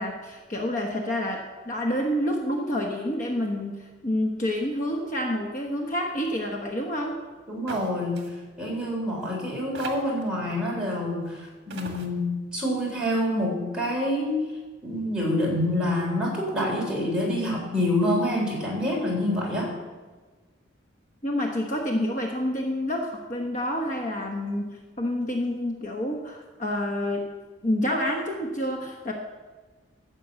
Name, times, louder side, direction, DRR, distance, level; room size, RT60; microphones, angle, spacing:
voice 1, 0.0-7.2 21.2-27.3 27.6-29.1, left 1 dB, 40° left, 1 dB, 1.1 m, -28 dB
voice 2, 7.5-8.2 8.6-14.4 14.8-19.7, left 1 dB, 5° right, -4 dB, 3.6 m, -27 dB
sound 1, 7.7-7.9 8.2-8.3 9.2-9.3 9.7-10.3 11.3-11.4 11.7-12.1, right 3 dB, 60° right, 1.6 m, -38 dB
12.5 x 6.3 x 8.0 m, 1.3 s
head